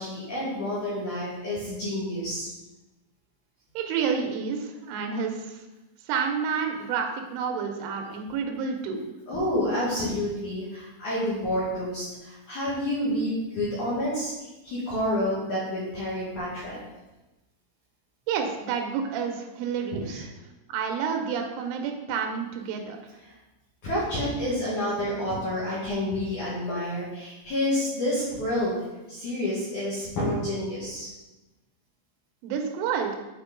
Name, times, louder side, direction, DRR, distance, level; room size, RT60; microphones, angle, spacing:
voice 1, 0.0-2.5 9.3-16.8 20.1-20.2 23.2-23.3 23.8-28.8 29.1-31.1, left 1 dB, 55° left, -8 dB, 2.4 m, -29 dB
voice 2, 3.7-5.6 6.0-9.0 18.3-20.3 20.7-23.0 32.4-33.2, right 6 dB, 90° right, 4 dB, 3.3 m, -29 dB
8.2 x 4.4 x 5.1 m, 1.0 s
omnidirectional pair, 5.6 m